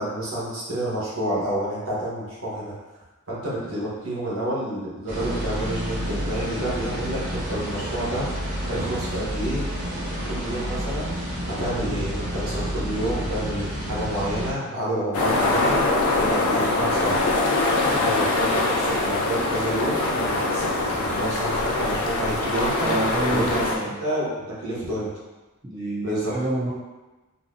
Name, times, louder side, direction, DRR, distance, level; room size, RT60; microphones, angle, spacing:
voice 1, 0.0-2.7 3.3-8.3 8.7-9.6 10.2-11.1 11.5-15.8 16.1-17.2 17.9-22.9 23.3-23.6 24.0-25.1 26.0-26.3, right 1 dB, 65° right, -7 dB, 1.0 m, -29 dB
sound 1, 5.1-14.5, equal, 35° right, 0.7 m, -30 dB
sound 2, 15.1-23.8, left 2 dB, 75° left, 0.5 m, -23 dB
voice 2, 22.8-23.9 25.6-26.7, right 2 dB, 20° right, -8 dB, 0.3 m, -28 dB
3.9 x 2.1 x 2.5 m, 1.1 s
head